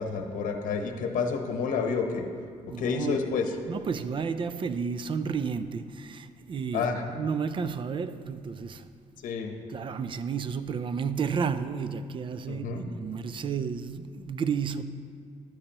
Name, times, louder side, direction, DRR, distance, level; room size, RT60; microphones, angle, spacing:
voice 1, 0.0-2.3 2.8-3.4 6.7-7.0 9.2-9.5 12.5-12.8, left 5 dB, 75° left, 0.9 m, -29 dB
voice 2, 2.7-3.2 3.7-8.9 9.7-14.8, right 6 dB, 40° right, 0.4 m, -32 dB
11.0 x 9.9 x 2.9 m
cardioid pair, 115°, 14 cm